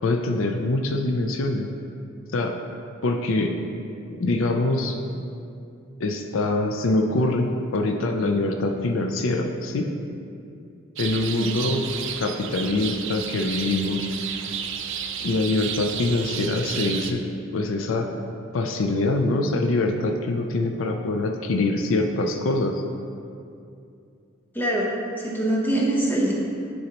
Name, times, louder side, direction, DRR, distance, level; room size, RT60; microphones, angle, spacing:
voice 1, 0.0-1.7 2.3-2.6 3.0-3.5 4.1-5.0 6.0-9.9 11.0-11.8 12.2-14.1 15.2-17.2 17.5-18.1 18.5-22.8, left 2 dB, 70° left, 4 dB, 0.4 m, -24 dB
sound 1, 11.0-17.1, right 7 dB, 65° right, 0.4 m, -32 dB
voice 2, 24.5-24.9 25.2-26.3, right 1 dB, 10° left, -3 dB, 0.8 m, -23 dB
9.7 x 4.0 x 2.9 m, 2.5 s
head